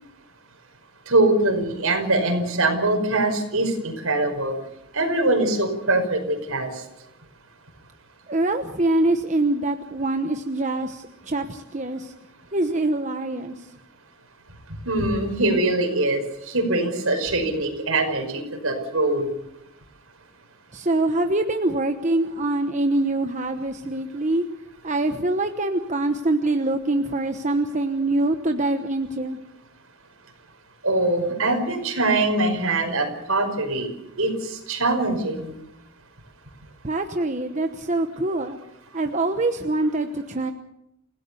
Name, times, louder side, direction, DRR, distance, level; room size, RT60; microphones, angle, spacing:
voice 1, 1.1-4.5 4.9-6.7 14.8-16.2 16.5-19.3 30.8-33.9 34.2-35.5, right 2 dB, 70° right, 5 dB, 5.5 m, -23 dB
voice 2, 8.3-12.1 12.5-13.7 20.7-24.5 24.8-29.4 36.8-38.6 38.9-40.5, right 2 dB, 35° right, 6 dB, 1.1 m, -24 dB
29.0 x 17.0 x 6.9 m, 0.83 s
head